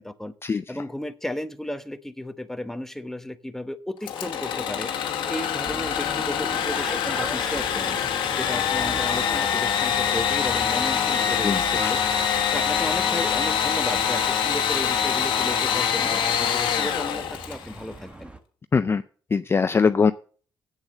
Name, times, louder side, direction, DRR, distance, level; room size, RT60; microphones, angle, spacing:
voice 1, 0.0-0.3 0.7-8.0 8.3-18.3, left 1 dB, 5° left, 9 dB, 0.9 m, -34 dB
Engine / Sawing, 4.0-17.7, left 8 dB, 90° left, 1.3 m, -25 dB
sound 1, 5.6-18.4, right 2 dB, 15° right, 1.2 m, -40 dB
voice 2, 11.4-11.9 18.7-19.0 19.3-20.1, left 5 dB, 30° left, 12 dB, 0.4 m, -21 dB
8.2 x 7.1 x 6.5 m, 0.43 s
cardioid pair, 85°, 8 cm